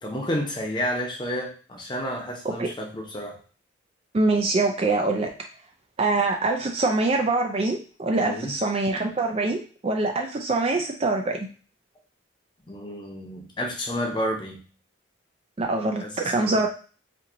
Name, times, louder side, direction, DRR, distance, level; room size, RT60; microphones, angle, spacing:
voice 1, 0.0-3.4 8.2-8.5 12.7-14.6 16.0-16.6, equal, 25° left, 0 dB, 0.7 m, -30 dB
voice 2, 4.1-5.3 6.0-11.5 15.6-16.7, right 3 dB, 30° right, 3 dB, 0.3 m, -24 dB
4.3 x 2.8 x 2.6 m, 0.38 s
head